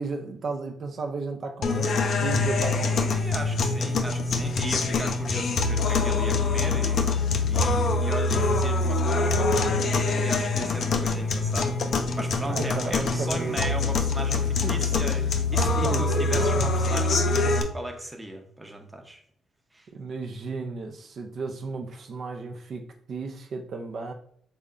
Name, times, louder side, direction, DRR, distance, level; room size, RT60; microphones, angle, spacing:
voice 1, 0.0-3.1 12.5-14.0 14.6-14.8 15.8-16.6 19.9-22.8 23.1-24.1, right 4 dB, 55° right, 3 dB, 0.4 m, -34 dB
sound 1, 1.6-17.6, left 3 dB, 60° left, 0.4 m, -24 dB
voice 2, 3.1-19.2 19.7-19.9, right 1 dB, 10° right, 3 dB, 0.6 m, -37 dB
3.6 x 2.1 x 3.6 m, 0.63 s
cardioid pair, 90°, 0 cm